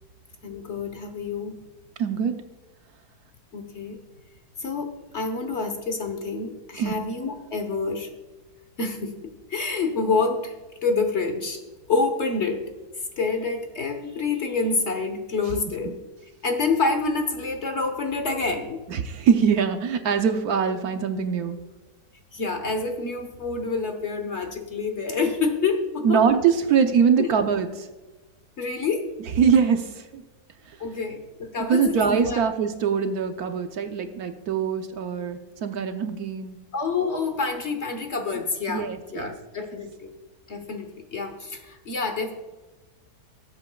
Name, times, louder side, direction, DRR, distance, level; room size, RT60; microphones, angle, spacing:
voice 1, 0.4-1.6 3.5-4.0 4.6-8.1 8.8-10.6 10.8-11.6 11.9-12.6 13.2-16.0 16.4-18.8 22.3-26.2 27.2-27.3 28.6-29.0 30.8-32.4 36.7-40.1 40.5-42.3, left 4 dB, 45° left, 5 dB, 1.2 m, -27 dB
voice 2, 2.0-2.4 6.8-6.9 18.9-21.6 26.0-27.9 29.4-30.2 31.7-36.6 38.7-39.3, right 7 dB, 70° right, 7 dB, 1.1 m, -23 dB
18.5 x 8.2 x 2.3 m, 1.2 s
omnidirectional pair, 1.8 m